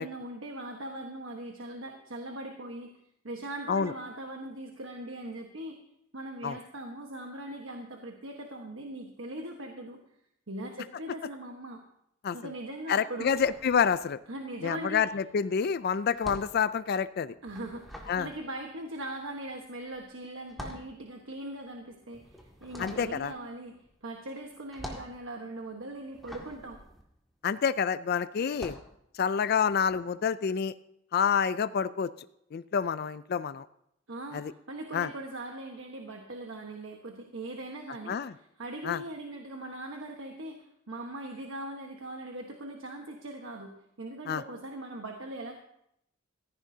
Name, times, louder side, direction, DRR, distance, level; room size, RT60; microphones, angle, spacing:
voice 1, 0.0-2.9 3.2-5.8 6.1-10.0 10.5-11.8 12.3-13.4 14.3-15.0 17.4-23.8 24.0-26.8 34.1-45.5, right 1 dB, 75° right, 2 dB, 1.3 m, -40 dB
voice 2, 12.9-14.2 14.6-17.3 18.1-18.3 22.8-23.3 27.4-28.8 29.2-30.7 31.1-32.1 32.5-33.7 34.3-34.5 34.9-35.1 38.1-38.3 38.8-39.0 44.3-44.4, left 6 dB, 50° left, 14 dB, 0.4 m, -28 dB
sound 1, 13.2-14.4 14.7-27.9 28.4-29.0, equal, ahead, 2.0 m, -46 dB
16.5 x 15.0 x 2.8 m, 0.76 s
head